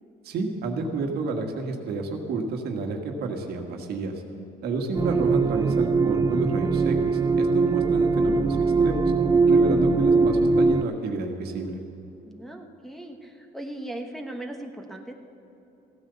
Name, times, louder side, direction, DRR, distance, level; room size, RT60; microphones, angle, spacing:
voice 1, 0.2-4.2 4.6-9.1 9.5-11.8, right 3 dB, 70° right, 3 dB, 1.6 m, -30 dB
sound 1, 5.0-10.8, right 4 dB, 25° right, 0.5 m, -21 dB
voice 2, 12.3-15.1, right 1 dB, ahead, 1 dB, 1.2 m, -38 dB
15.5 x 9.4 x 6.9 m, 3.0 s
cardioid pair, 110°, 17 cm